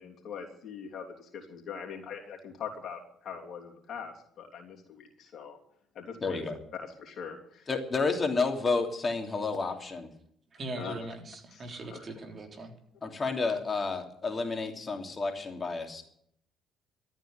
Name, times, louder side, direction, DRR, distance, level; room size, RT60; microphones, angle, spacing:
voice 1, 0.0-5.6 5.9-6.4 6.7-7.7 10.7-10.9 11.5-12.0, left 7 dB, 60° left, 1 dB, 3.2 m, -42 dB
voice 2, 6.2-6.5 7.7-10.1 13.0-16.0, left 4 dB, 30° left, 3 dB, 3.0 m, -30 dB
voice 3, 10.5-12.7, right 2 dB, 45° right, 3 dB, 3.5 m, -40 dB
13.5 x 9.1 x 9.5 m, 0.69 s
hypercardioid pair, 55°, 0 cm